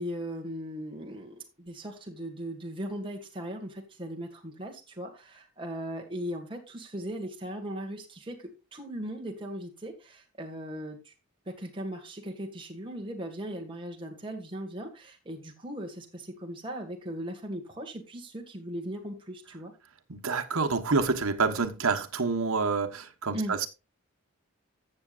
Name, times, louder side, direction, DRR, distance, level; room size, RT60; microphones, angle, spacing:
voice 1, 0.0-11.1 11.5-19.7 23.3-23.6, equal, 25° right, 1.9 m, -38 dB
voice 2, 20.1-23.7, right 4 dB, 75° right, 1.2 m, -27 dB
15.0 x 7.0 x 2.5 m
head